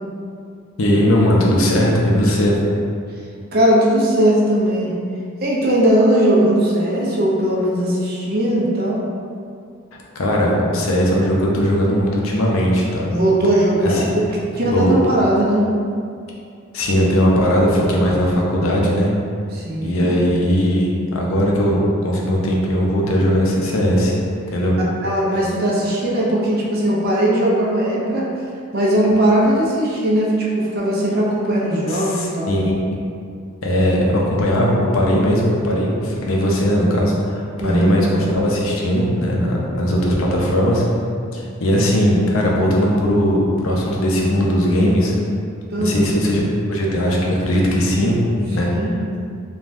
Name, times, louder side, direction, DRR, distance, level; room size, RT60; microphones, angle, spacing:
voice 1, 0.8-2.6 10.1-13.1 13.8-14.0 14.7-14.9 16.7-19.1 19.8-24.1 24.5-24.8 31.9-33.0 33.6-40.8 41.3-45.1 45.8-46.4 46.7-48.2 48.5-48.7, equal, 70° left, -2 dB, 0.5 m, -18 dB
voice 2, 3.5-4.9 5.4-9.0 13.1-14.3 14.6-15.6 19.5-20.1 25.0-28.3 28.7-32.6 37.6-38.1 45.7-46.0 48.6-48.9, right 1 dB, 45° right, -4 dB, 0.5 m, -18 dB
3.3 x 2.2 x 2.5 m, 2.3 s
head